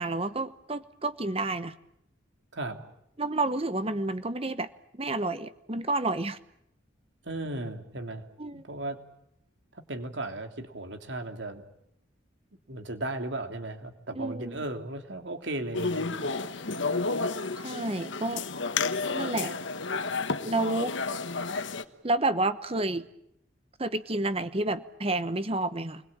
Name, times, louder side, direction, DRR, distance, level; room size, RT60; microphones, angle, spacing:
voice 1, 0.0-1.7 3.2-4.7 4.9-6.4 8.4-8.6 14.2-14.6 17.6-18.4 19.1-19.5 20.4-21.0 22.0-23.0 23.8-26.0, right 2 dB, 30° right, 12 dB, 1.0 m, -30 dB
voice 2, 7.2-8.2 8.5-9.0 9.7-11.6 12.7-16.1, right 2 dB, 65° right, 6 dB, 3.1 m, -36 dB
sound 1, 15.7-21.8, left 4 dB, 70° left, 1.4 m, -31 dB
28.5 x 21.5 x 8.8 m, 0.79 s
head